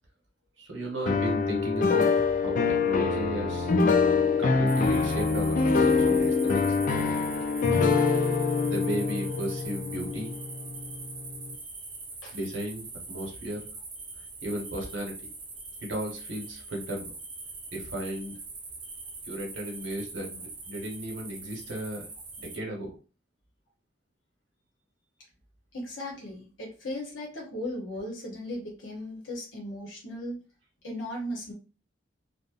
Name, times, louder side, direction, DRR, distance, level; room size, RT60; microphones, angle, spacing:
voice 1, 0.6-3.7 4.4-7.2 8.7-10.4 12.3-13.6 14.4-15.1 15.8-17.0 17.7-18.4 19.2-22.1 22.4-22.9, right 1 dB, 85° right, 0 dB, 1.0 m, -35 dB
sound 1, 1.1-11.0, left 4 dB, 45° left, 0.3 m, -25 dB
sound 2, 4.7-22.6, right 3 dB, 25° right, 0.5 m, -42 dB
voice 2, 25.7-30.4 30.8-31.5, left 1 dB, 80° left, -2 dB, 0.8 m, -37 dB
2.6 x 2.0 x 2.4 m, 0.34 s
head